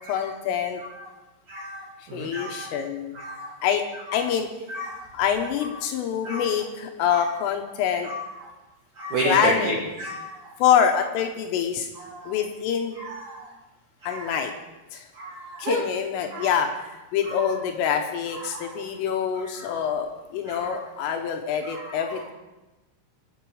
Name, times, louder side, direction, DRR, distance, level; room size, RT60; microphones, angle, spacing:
voice 1, 0.1-0.8 2.1-3.2 3.6-3.8 4.1-4.5 5.1-8.1 9.3-9.9 10.6-11.9 12.3-13.0 14.1-14.5 14.9-15.1 15.6-22.3, left 8 dB, 80° left, 4 dB, 3.6 m, -25 dB
voice 2, 0.8-1.1 1.5-2.7 3.1-3.5 4.1-4.3 4.7-5.1 6.2-6.5 7.1-7.4 8.0-8.5 9.0-10.6 12.0-12.3 13.0-13.5 14.0-14.3 15.1-15.8 16.3-16.6 17.2-17.6 18.4-18.8 19.5-19.9 20.5-20.9 21.6-22.2, right 1 dB, 70° right, -1 dB, 1.8 m, -33 dB
26.0 x 9.3 x 4.9 m, 1.1 s
omnidirectional pair, 5.8 m